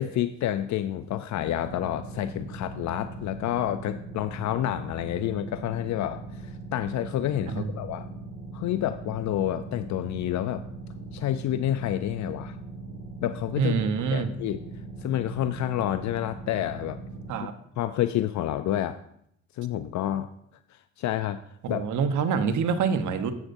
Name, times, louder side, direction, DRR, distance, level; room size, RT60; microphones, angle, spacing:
voice 1, 0.0-8.1 8.5-10.7 11.1-12.6 13.2-14.6 15.0-17.0 17.8-19.0 19.5-20.3 20.7-21.4 21.7-21.8, left 12 dB, 70° left, 11 dB, 0.5 m, -29 dB
sound 1, 1.3-17.3, right 3 dB, 45° right, 3.9 m, -40 dB
voice 2, 13.6-14.3 17.3-17.5 21.6-23.3, right 6 dB, 75° right, 8 dB, 1.0 m, -26 dB
13.0 x 7.8 x 2.6 m, 0.73 s
cardioid pair, 90°, 30 cm